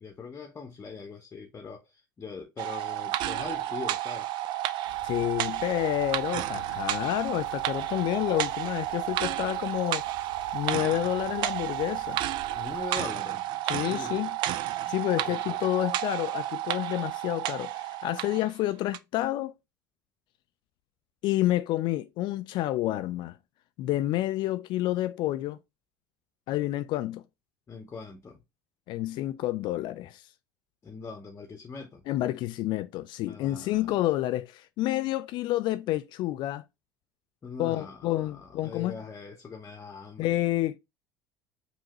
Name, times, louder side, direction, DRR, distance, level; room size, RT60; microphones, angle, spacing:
voice 1, 0.0-4.3 12.5-13.4 13.8-14.2 15.2-15.6 27.7-28.4 30.8-32.0 33.2-33.9 37.4-40.3, left 5 dB, 25° left, 0.8 m, -41 dB
sound 1, 2.6-18.5 18.9-19.0, right 13 dB, 45° right, 0.4 m, -31 dB
sound 2, 4.8-13.0, left 1 dB, 85° right, 1.0 m, -50 dB
voice 2, 5.0-10.0 10.5-12.2 13.6-14.4 14.9-19.5 21.2-23.4 23.8-25.6 26.5-27.2 28.9-30.2 32.1-36.6 37.6-39.0 40.2-40.8, left 15 dB, 45° left, 0.3 m, -29 dB
5.5 x 2.8 x 3.0 m
figure-of-eight pair, 65°, 11 cm